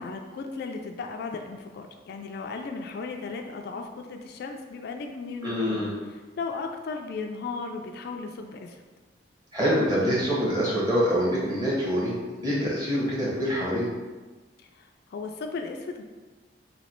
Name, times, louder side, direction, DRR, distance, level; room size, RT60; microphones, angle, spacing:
voice 1, 0.0-8.8 14.8-16.0, left 4 dB, 60° left, 4 dB, 0.3 m, -36 dB
voice 2, 5.4-5.9 9.5-13.9, equal, 20° right, -7 dB, 1.3 m, -25 dB
3.1 x 2.8 x 4.4 m, 1.3 s
head